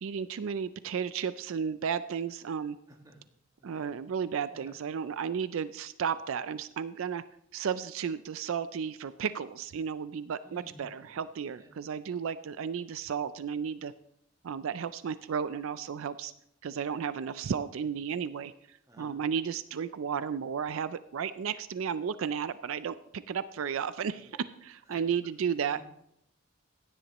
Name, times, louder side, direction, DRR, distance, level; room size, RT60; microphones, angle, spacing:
voice 1, 0.0-2.8 3.6-7.2 7.5-13.9 14.4-16.3 16.6-25.8, right 7 dB, 70° right, 14 dB, 0.4 m, -33 dB
voice 2, 2.9-3.2 3.7-3.9 4.8-4.9 10.4-11.2 11.6-11.7 18.9-19.1 24.1-24.4 24.9-25.0 25.7-25.8, right 1 dB, 15° right, 2 dB, 1.6 m, -54 dB
16.0 x 11.0 x 3.0 m, 0.76 s
head